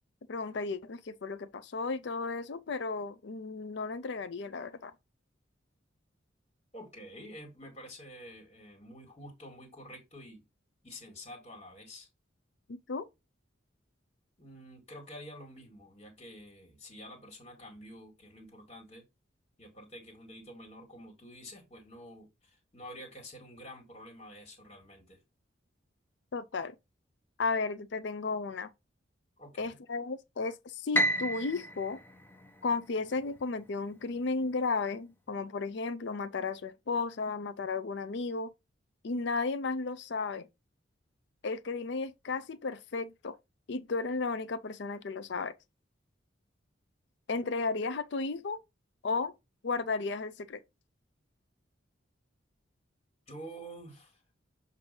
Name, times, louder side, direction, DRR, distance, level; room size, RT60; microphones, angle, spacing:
voice 1, 0.3-4.9 12.7-13.1 26.3-26.8 27.4-28.7 29.6-32.0 32.6-38.5 39.0-40.5 41.4-43.4 43.7-45.5 47.3-48.6 49.0-49.3 49.6-50.6, left 4 dB, 65° left, 0.5 m, -34 dB
voice 2, 6.7-10.4 10.8-12.1 14.4-19.0 19.6-25.2 29.4-29.8 53.3-54.2, equal, 35° left, 1.9 m, -48 dB
Piano, 30.9-33.2, right 1 dB, 10° left, 0.7 m, -32 dB
7.0 x 2.7 x 5.3 m
head